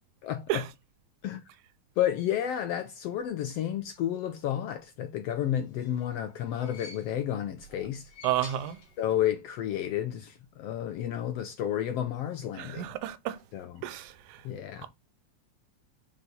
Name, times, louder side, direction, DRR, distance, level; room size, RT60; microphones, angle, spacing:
voice 1, 0.2-0.7 1.2-1.4 2.0-8.1 9.0-13.0 13.5-13.8 14.4-14.9, left 11 dB, 80° left, 1.4 m, -31 dB
sound 1, 5.5-7.4 7.9-9.3 9.6-9.7 10.8-10.9, left 4 dB, 55° left, 2.4 m, -50 dB
voice 2, 8.2-8.8 12.6-13.4 13.8-14.1, right 13 dB, 85° right, 2.2 m, -30 dB
6.2 x 4.6 x 3.9 m
omnidirectional pair, 3.4 m